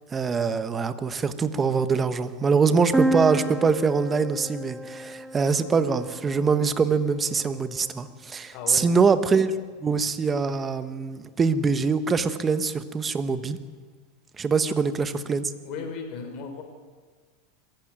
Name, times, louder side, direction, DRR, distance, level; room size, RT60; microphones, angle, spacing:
voice 1, 0.1-9.5 9.8-13.6 14.4-15.5, right 5 dB, 20° right, 11 dB, 1.2 m, -24 dB
sound 1, 2.9-6.7, right 1 dB, 5° right, 0.8 m, -30 dB
voice 2, 8.5-8.9 15.6-16.6, left 5 dB, 50° left, 5 dB, 4.7 m, -35 dB
23.0 x 15.0 x 9.3 m, 1.5 s
supercardioid pair, 135°, 0 cm